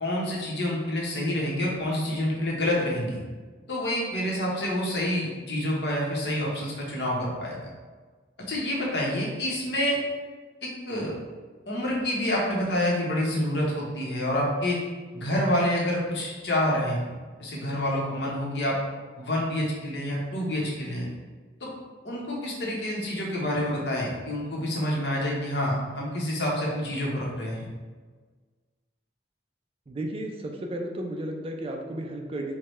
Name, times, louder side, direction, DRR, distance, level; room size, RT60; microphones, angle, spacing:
voice 1, 0.0-3.2 3.7-7.6 8.5-10.0 10.6-11.1 11.7-14.8 15.1-17.1 17.4-18.8 19.2-21.0 21.6-21.7 22.0-27.6, left 1 dB, 70° left, -3 dB, 1.0 m, -28 dB
voice 2, 29.9-32.6, right 1 dB, 30° right, 2 dB, 0.4 m, -33 dB
4.6 x 2.2 x 3.2 m, 1.4 s
head